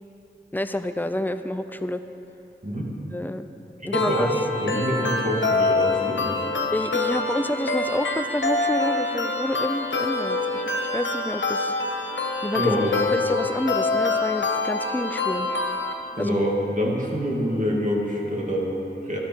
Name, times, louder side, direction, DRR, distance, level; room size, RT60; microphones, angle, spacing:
voice 1, 0.5-2.0 3.1-3.5 3.8-4.3 6.7-11.7 12.4-12.8 13.1-15.5 16.2-16.4, left 1 dB, 10° left, 9 dB, 0.6 m, -28 dB
voice 2, 2.6-2.9 3.9-6.4 12.6-13.0 16.1-19.2, equal, 45° right, -3 dB, 2.4 m, -26 dB
sound 1, 3.9-15.9, left 3 dB, 80° left, 1.1 m, -25 dB
13.5 x 12.0 x 4.6 m, 2.9 s
wide cardioid pair, 50°, 19 cm